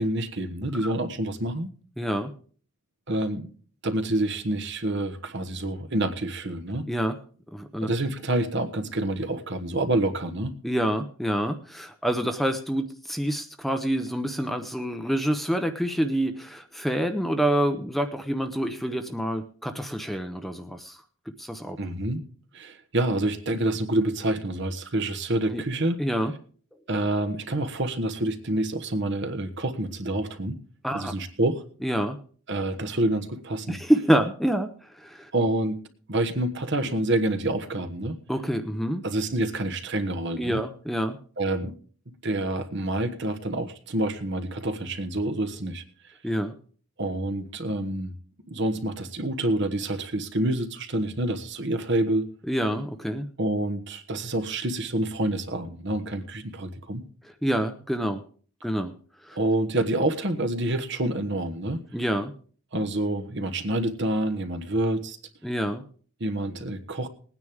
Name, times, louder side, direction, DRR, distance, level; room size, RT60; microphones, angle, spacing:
voice 1, 0.0-1.7 3.1-3.5 3.8-6.9 7.8-10.6 21.8-22.2 22.5-26.0 26.9-30.6 30.9-31.6 32.5-33.8 35.3-35.8 36.1-38.2 39.0-40.6 41.4-41.7 42.2-45.8 47.0-48.1 48.5-52.3 53.4-57.0 59.3-61.9 62.7-65.2 66.2-67.1, right 1 dB, 55° right, 9 dB, 1.3 m, -27 dB
voice 2, 2.0-2.3 6.9-7.2 7.5-7.9 10.6-21.0 21.4-21.8 25.5-25.6 26.0-26.3 30.8-31.1 31.8-32.2 33.7-35.3 38.3-39.0 40.4-41.2 46.2-46.5 52.4-53.3 57.2-58.2 58.6-58.9 59.2-59.4 61.9-62.3 65.4-65.8, equal, ahead, 7 dB, 0.7 m, -27 dB
20.0 x 9.7 x 3.5 m, 0.43 s
head